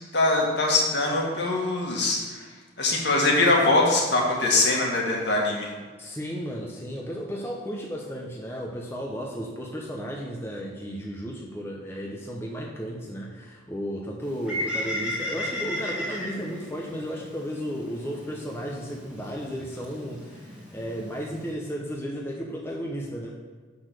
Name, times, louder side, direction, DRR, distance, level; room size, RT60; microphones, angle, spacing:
voice 1, 0.1-2.4 2.8-5.7, left 2 dB, 65° left, -2 dB, 2.0 m, -22 dB
voice 2, 6.0-23.4, equal, 15° left, -2 dB, 0.9 m, -34 dB
Bird, 14.2-21.5, left 1 dB, 5° right, 1.9 m, -35 dB
7.0 x 6.0 x 6.6 m, 1.5 s
head